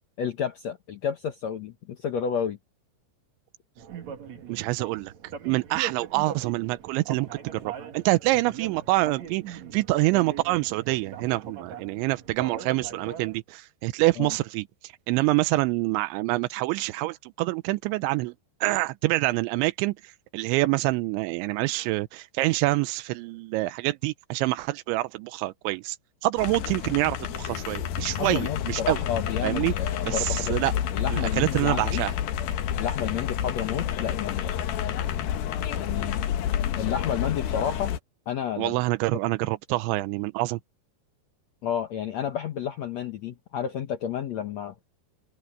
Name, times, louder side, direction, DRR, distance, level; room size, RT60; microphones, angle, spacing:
voice 1, 0.2-2.6 14.2-14.3 28.2-30.5 30.9-32.0 32.8-34.5 35.7-36.3 36.8-37.9 38.3-38.7 41.6-44.7, left 8 dB, 85° left, 1.5 m, -31 dB
sound 1, 3.8-13.4, right 8 dB, 50° right, 2.5 m, -41 dB
voice 2, 4.5-5.1 5.5-18.3 18.6-26.0 26.2-29.0 29.4-29.7 30.1-30.7 31.1-32.1 38.6-40.6, right 20 dB, 90° right, 3.1 m, -26 dB
sound 2, 26.4-38.0, left 9 dB, 65° left, 2.6 m, -29 dB
omnidirectional pair, 5.2 m